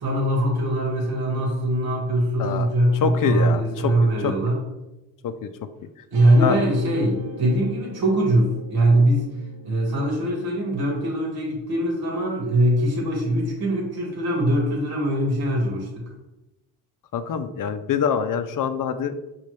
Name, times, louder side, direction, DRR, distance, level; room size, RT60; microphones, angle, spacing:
voice 1, 0.0-4.6 6.1-9.3 9.6-16.0, right 1 dB, 55° right, 0 dB, 1.5 m, -22 dB
voice 2, 2.4-3.9 4.2-4.3 5.2-5.5 6.4-6.6 17.1-19.3, left 7 dB, 50° left, 10 dB, 0.5 m, -25 dB
Guitar, 6.1-12.6, right 2 dB, 80° right, 0.8 m, -44 dB
5.3 x 3.1 x 3.2 m, 0.97 s
supercardioid pair, 65°, 44 cm